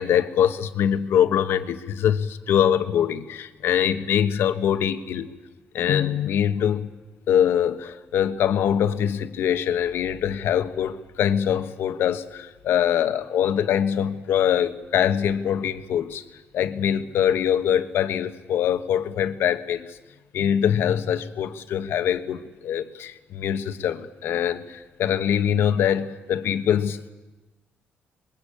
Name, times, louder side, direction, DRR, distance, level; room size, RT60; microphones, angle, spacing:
voice 1, 0.0-5.3 5.7-6.9 7.3-16.2 16.5-20.0 20.3-27.1, left 9 dB, 75° left, 10 dB, 1.4 m, -23 dB
27.0 x 22.0 x 8.7 m, 1.1 s
cardioid pair, 150°, 4 cm